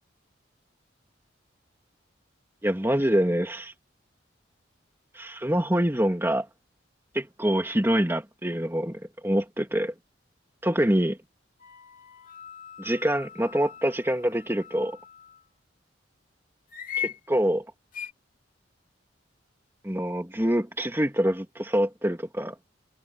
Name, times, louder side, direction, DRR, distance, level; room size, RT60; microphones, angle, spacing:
voice 1, 2.6-3.7 5.1-6.5 7.1-9.9 10.6-11.2 12.8-15.0 17.0-17.6 19.8-22.5, equal, 10° right, 2.7 m, -25 dB
sound 1, 11.6-15.4 16.7-17.2 17.9-18.1, left 9 dB, 45° left, 3.0 m, -39 dB
head